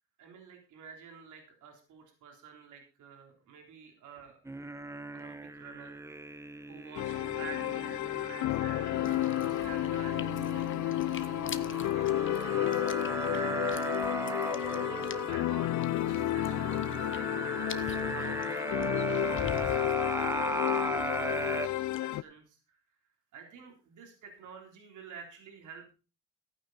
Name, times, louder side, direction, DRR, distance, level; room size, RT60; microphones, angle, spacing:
voice 1, 0.2-4.4 5.1-6.0 6.7-9.1 9.4-11.4 12.0-18.7 19.2-22.8 23.3-25.9, right 5 dB, 80° right, 3 dB, 3.7 m, -50 dB
sound 1, 4.5-21.7, right 2 dB, 10° right, 0.9 m, -37 dB
sound 2, 6.9-22.2, left 15 dB, 70° left, 0.5 m, -32 dB
sound 3, 9.0-21.5 21.8-22.0, left 7 dB, 40° left, 1.1 m, -45 dB
14.5 x 9.3 x 4.1 m, 0.34 s
cardioid pair, 90°, 30 cm